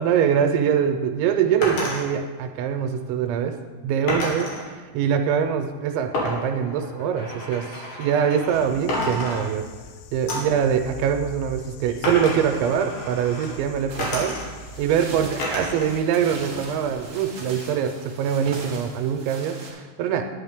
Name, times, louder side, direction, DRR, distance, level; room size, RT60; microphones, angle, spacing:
voice 1, 0.0-3.5 3.8-9.6 10.1-14.3 14.8-20.2, right 8 dB, 85° right, 5 dB, 2.9 m, -23 dB
sound 1, 1.6-2.0 4.1-4.6 6.1-8.6 8.9-9.9 10.3-10.6 12.0-13.5 14.0-14.7 15.4-15.9 16.3-17.1, left 1 dB, 55° left, 3.2 m, -30 dB
sound 2, 8.5-16.0, left 2 dB, 85° left, 3.0 m, -43 dB
sound 3, 13.9-19.7, right 3 dB, 50° right, 1.4 m, -40 dB
11.0 x 10.0 x 3.6 m, 1.4 s
omnidirectional pair, 5.3 m